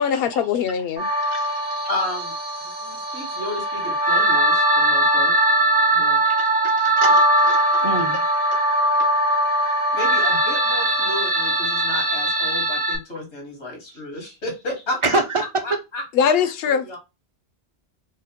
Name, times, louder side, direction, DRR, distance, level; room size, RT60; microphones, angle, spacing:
voice 1, 0.0-1.1 16.2-16.9, left 7 dB, 65° left, 0.8 m, -21 dB
sound 1, 1.0-13.0, right 1 dB, 60° right, 1.1 m, -20 dB
voice 2, 1.9-2.3 2.8-5.3 5.9-6.2 9.9-15.2 15.6-16.3 16.7-17.0, left 2 dB, 90° left, 1.8 m, -32 dB
voice 3, 6.2-8.2 13.9-14.0 15.0-15.4, right 3 dB, 35° right, 0.5 m, -27 dB
4.8 x 2.1 x 2.8 m
omnidirectional pair, 1.1 m